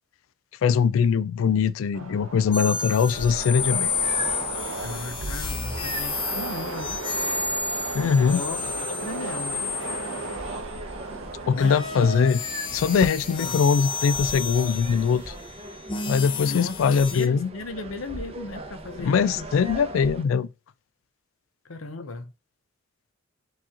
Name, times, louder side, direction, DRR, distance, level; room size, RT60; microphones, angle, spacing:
voice 1, 0.6-3.9 7.9-8.4 11.5-12.4 12.7-15.3 16.1-17.5 19.0-20.5, left 6 dB, 75° left, 0.3 m, -22 dB
Train, 1.9-14.2, right 3 dB, 80° right, 0.8 m, -36 dB
sound 1, 2.5-10.8 11.5-17.3, left 5 dB, 25° left, 0.6 m, -31 dB
sound 2, 3.1-20.2, right 2 dB, 30° right, 0.6 m, -40 dB
voice 2, 4.8-7.0 8.2-8.6 8.9-9.6 11.5-12.1 13.4-13.7 16.4-19.5 21.6-22.3, left 3 dB, 90° left, 0.8 m, -36 dB
4.7 x 2.9 x 3.7 m
head